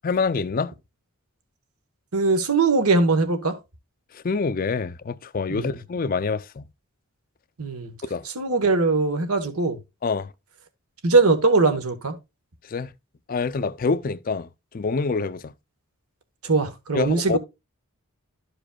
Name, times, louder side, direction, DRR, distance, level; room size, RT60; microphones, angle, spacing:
voice 1, 0.0-0.7 4.1-6.6 8.1-8.3 10.0-10.3 12.7-12.9 13.3-14.5 14.7-15.5 16.9-17.4, left 4 dB, 40° left, 0.4 m, -26 dB
voice 2, 2.1-3.6 5.5-5.8 7.6-7.9 8.2-9.8 11.0-12.1 16.4-17.4, right 3 dB, 75° right, 1.3 m, -21 dB
13.0 x 5.0 x 2.3 m
head